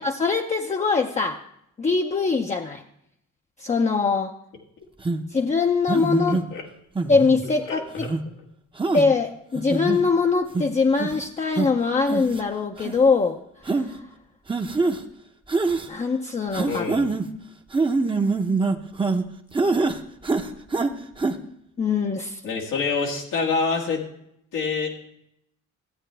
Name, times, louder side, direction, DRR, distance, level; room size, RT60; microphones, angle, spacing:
voice 1, 0.0-1.4 1.8-2.8 3.6-4.3 5.3-6.4 7.1-8.1 8.9-14.0 15.9-16.9 21.8-22.4, left 4 dB, 25° left, 3 dB, 0.6 m, -22 dB
sound 1, 5.0-5.2 5.9-6.4 7.0-7.4 8.0-8.2 8.8-9.1 9.5-10.0 10.5-10.6 11.0-11.2 11.6-11.7 12.1-12.4 12.8-12.9 13.7-13.9 14.5-15.0 15.5-15.9 16.5-17.3 17.7-19.2 19.5-20.0 20.2-20.9 21.2-21.3, right 3 dB, 15° right, 0.8 m, -24 dB
voice 2, 16.7-17.1 22.4-24.0 24.5-24.9, left 4 dB, 90° left, -2 dB, 1.8 m, -26 dB
13.5 x 8.2 x 3.3 m, 0.76 s
cardioid pair, 90°, 30 cm